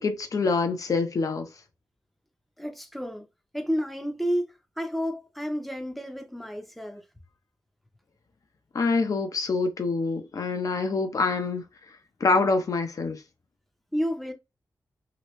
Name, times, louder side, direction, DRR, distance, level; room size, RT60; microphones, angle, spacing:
voice 1, 0.0-1.5 8.7-11.6 12.2-13.2, left 4 dB, 50° left, 0.7 m, -25 dB
voice 2, 2.6-3.3 3.5-7.0 13.9-14.3, equal, ahead, 0.7 m, -31 dB
3.0 x 2.8 x 3.1 m
wide cardioid pair, 135°, 7 cm